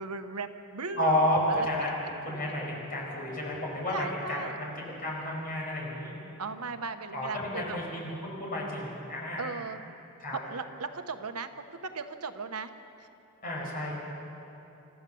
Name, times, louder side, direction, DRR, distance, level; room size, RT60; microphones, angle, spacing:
voice 1, 0.0-1.9 3.9-4.5 6.4-7.8 9.4-9.8 10.3-12.7 13.0-13.1, right 4 dB, 85° right, 8 dB, 1.1 m, -37 dB
voice 2, 0.9-1.9 2.2-4.7 5.0-6.2 7.1-9.5 10.2-10.4 13.4-13.9, left 1 dB, 40° left, -3 dB, 5.8 m, -31 dB
27.5 x 14.0 x 7.0 m, 2.9 s
head